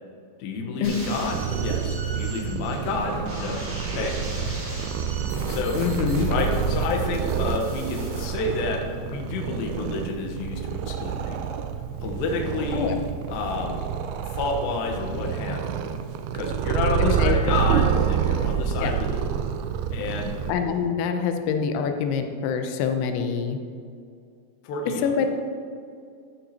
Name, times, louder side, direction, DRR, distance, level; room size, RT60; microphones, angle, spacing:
voice 1, 0.4-3.7 3.9-4.7 5.5-5.8 6.3-11.6 12.0-13.0 13.3-13.9 14.2-15.8 16.3-19.3 19.9-20.3 24.6-25.1, left 3 dB, 70° left, 1 dB, 2.5 m, -30 dB
sound 1, 0.8-8.3, equal, 60° right, 0.8 m, -37 dB
Purr, 1.2-20.5, right 8 dB, 90° right, 2.2 m, -28 dB
voice 2, 5.7-6.3 12.7-12.9 17.0-17.4 18.8-19.0 20.5-23.6 25.0-25.3, left 7 dB, 90° left, 6 dB, 3.0 m, -25 dB
sound 2, 16.7-19.3, left 1 dB, 40° left, 1.9 m, -48 dB
12.5 x 8.6 x 2.8 m, 2.3 s
omnidirectional pair, 5.1 m